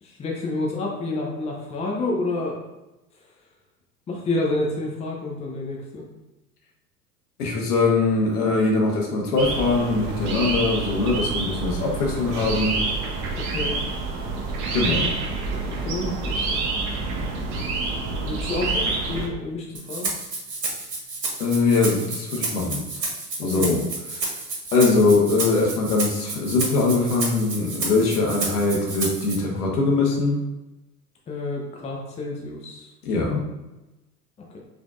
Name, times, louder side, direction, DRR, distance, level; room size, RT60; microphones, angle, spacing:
voice 1, 0.0-2.6 4.1-6.0 13.5-13.8 15.8-16.5 18.1-20.1 23.6-23.7 31.3-32.9 34.5-34.6, left 2 dB, 15° left, -2 dB, 0.6 m, -29 dB
voice 2, 7.4-12.8 14.7-15.1 21.4-22.8 23.4-23.8 24.1-24.3 24.7-30.4 33.0-33.4, left 3 dB, 70° left, -1 dB, 1.3 m, -22 dB
sound 1, 9.4-19.3, right 3 dB, 35° right, 0.8 m, -27 dB
Rattle (instrument), 19.8-29.4, right 3 dB, 85° right, 1.2 m, -31 dB
5.0 x 3.4 x 2.5 m, 1.0 s
figure-of-eight pair, 85°, 48 cm